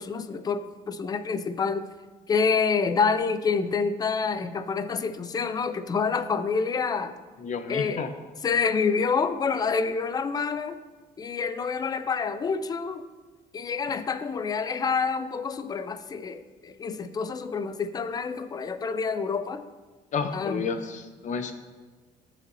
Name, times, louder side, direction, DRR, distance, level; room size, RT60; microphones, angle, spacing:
voice 1, 0.0-1.9 2.3-7.1 7.7-8.0 8.4-10.8 11.2-13.1 13.5-19.7 20.3-20.7, left 5 dB, 25° left, 11 dB, 0.4 m, -27 dB
voice 2, 7.4-8.1 20.1-21.5, left 5 dB, 45° left, 8 dB, 0.8 m, -31 dB
14.0 x 5.0 x 2.7 m, 1.3 s
cardioid pair, 110°, 17 cm